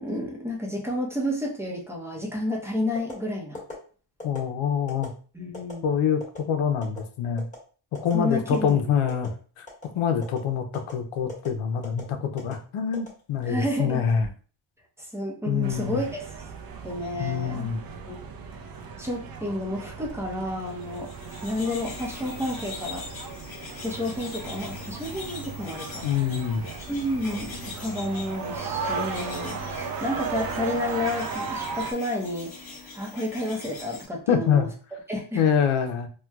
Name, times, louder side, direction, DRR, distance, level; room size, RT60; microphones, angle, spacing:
voice 1, 0.0-3.6 5.3-5.9 8.1-8.8 13.4-14.1 15.0-16.3 16.8-17.7 18.1-18.2 19.0-21.1 21.4-23.1 23.8-26.1 26.9-34.7 35.1-35.4, left 1 dB, 5° right, -1 dB, 0.7 m, -30 dB
sound 1, 2.9-3.2 3.5-3.7 4.2-4.4 4.9-5.1 5.5-5.7 6.2-6.4 6.8-7.0 7.4-7.6 7.9-8.1 8.5-8.7 9.1-9.3 9.7-9.9 10.2-10.4 10.7-10.9 11.3-11.5 11.8-12.0 12.4-12.5 12.9-13.6 14.0-14.3, left 2 dB, 15° left, 1.5 m, -39 dB
voice 2, 4.2-5.1 5.8-7.5 8.0-9.7 9.9-14.3 15.5-16.0 17.2-17.8 26.0-26.7 34.3-34.7 35.3-36.1, left 7 dB, 80° left, 6 dB, 0.7 m, -25 dB
sound 2, 15.6-31.9, right 5 dB, 50° right, 0.5 m, -36 dB
sound 3, 20.8-34.1, left 4 dB, 45° left, 1.0 m, -42 dB
4.2 x 2.2 x 2.3 m, 0.40 s
wide cardioid pair, 145°, 49 cm